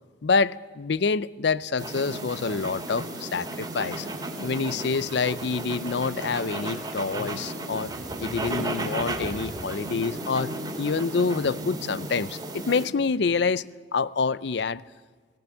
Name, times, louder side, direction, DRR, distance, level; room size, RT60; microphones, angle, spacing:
voice 1, 0.2-4.1 4.4-7.9 8.2-13.6 13.9-14.8, left 4 dB, 65° left, 0.5 m, -27 dB
sound 1, 1.8-12.9, right 2 dB, 20° right, 2.5 m, -34 dB
19.0 x 18.0 x 8.9 m
head